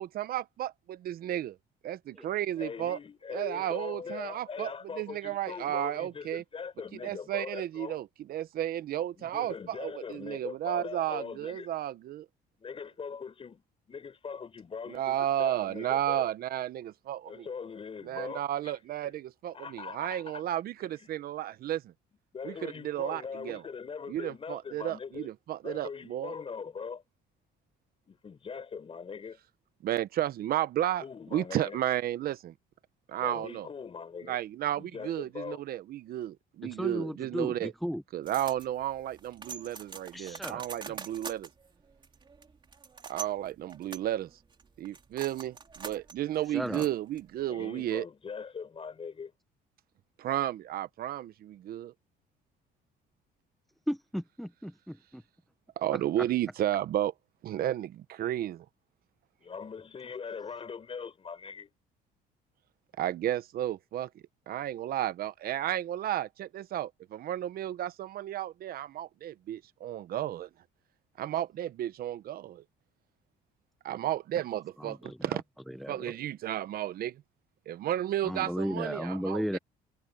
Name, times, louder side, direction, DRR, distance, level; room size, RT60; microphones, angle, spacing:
voice 1, 0.0-1.6 1.8-3.0 3.3-6.4 7.0-12.3 14.9-17.5 18.0-21.9 22.4-23.6 24.1-26.3 29.8-31.0 31.3-32.5 33.1-33.7 34.3-37.7 38.1-41.5 43.0-44.3 44.8-48.1 50.2-51.9 55.8-57.1 57.4-58.7 63.0-70.5 71.2-72.6 73.8-75.4 75.9-77.2 77.7-79.6, right 12 dB, 60° right, 1.0 m, -33 dB
voice 2, 2.6-8.0 9.2-11.7 12.6-16.3 17.2-19.1 19.5-20.4 20.8-21.1 22.3-25.3 25.6-27.0 28.1-29.4 31.0-31.8 33.2-34.4 34.8-35.6 47.4-49.3 59.4-61.7, left 6 dB, 35° left, 4.6 m, -41 dB
voice 3, 36.6-38.0 40.1-41.0 46.5-46.9 53.9-55.2 74.8-75.4 75.8-76.0 78.2-79.6, equal, ahead, 0.7 m, -35 dB
sound 1, 38.2-47.5, right 5 dB, 25° right, 2.6 m, -46 dB
cardioid pair, 110°, 17 cm